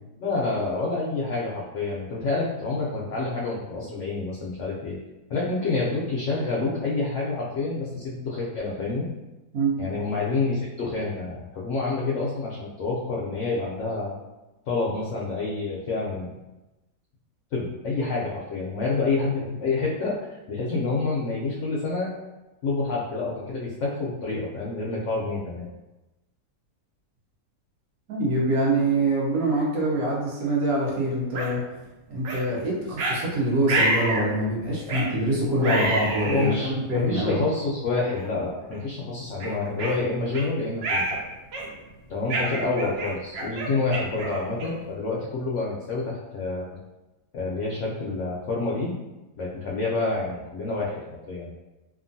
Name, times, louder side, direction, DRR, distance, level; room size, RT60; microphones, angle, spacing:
voice 1, 0.2-5.0 5.3-9.1 9.8-14.1 14.7-16.3 17.5-20.2 20.5-22.1 22.6-25.7 34.9-35.2 35.6-35.8 36.3-41.2 42.1-46.7 47.3-48.9 49.4-51.0 51.3-51.6, left 3 dB, 70° left, -4 dB, 0.7 m, -28 dB
voice 2, 9.5-9.9 28.1-31.6 32.1-37.4, right 1 dB, 70° right, -3 dB, 1.2 m, -25 dB
sound 1, 31.3-31.5 32.2-32.4 33.0-33.2 33.7-34.3 34.9-35.1 35.6-36.5 37.3-37.4 38.1-38.3 38.7-38.8 39.4-40.5 40.8-41.2 41.5-41.8 42.3-44.9, right 2 dB, 85° right, 0.5 m, -28 dB
2.9 x 2.3 x 2.6 m, 1.1 s
omnidirectional pair, 1.7 m